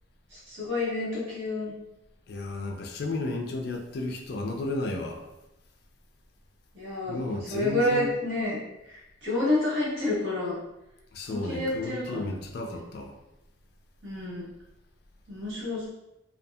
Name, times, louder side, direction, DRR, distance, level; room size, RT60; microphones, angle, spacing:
voice 1, 0.3-1.7 6.7-8.6 8.8-10.6 11.3-12.3 12.6-12.8 14.0-14.5 15.3-15.9, left 2 dB, 80° right, -8 dB, 1.3 m, -29 dB
voice 2, 2.3-5.3 7.0-8.1 11.1-13.2, left 2 dB, 55° left, 3 dB, 0.3 m, -33 dB
2.6 x 2.3 x 2.3 m, 0.91 s
head